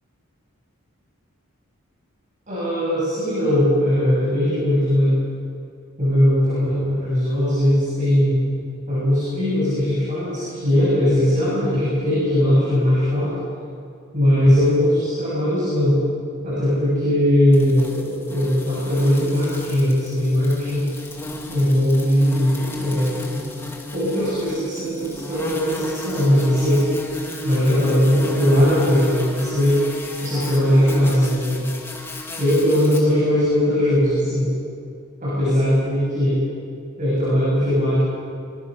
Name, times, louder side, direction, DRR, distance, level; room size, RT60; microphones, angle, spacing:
voice 1, 2.5-5.2 6.0-8.5 8.9-13.3 14.1-16.0 16.4-20.9 21.5-23.5 23.9-26.8 27.4-29.8 30.2-31.7 32.4-34.5 35.2-36.4 37.0-38.0, equal, 35° right, -8 dB, 7.7 m, -19 dB
sound 1, 17.5-33.0, left 1 dB, 10° left, 2.4 m, -33 dB
26.5 x 23.0 x 6.6 m, 2.3 s
head